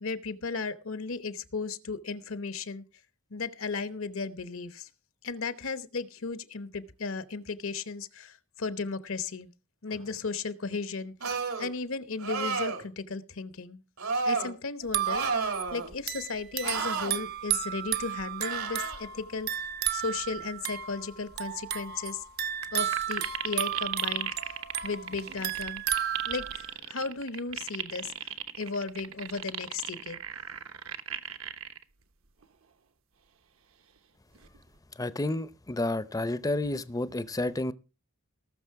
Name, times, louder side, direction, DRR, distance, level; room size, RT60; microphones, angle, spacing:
voice 1, 0.0-2.8 3.3-4.9 5.2-9.5 9.8-11.1 11.6-13.8 14.2-19.5 19.9-22.2 22.7-24.6 24.8-25.8 26.3-28.1 28.6-30.2, left 4 dB, 65° left, 13 dB, 1.0 m, -35 dB
sound 1, 11.2-11.7 12.2-12.8 14.0-14.5 15.0-15.9 16.6-17.1 18.5-19.0, right 4 dB, 85° right, 2.9 m, -31 dB
sound 2, 14.8-26.7, right 10 dB, 50° right, 0.8 m, -33 dB
sound 3, 22.6-22.7 22.9-31.8 32.4-32.5 34.3-34.8, right 10 dB, 70° right, 1.1 m, -35 dB
voice 2, 35.0-37.7, left 2 dB, 15° left, 15 dB, 0.6 m, -30 dB
19.0 x 6.5 x 4.7 m, 0.31 s
head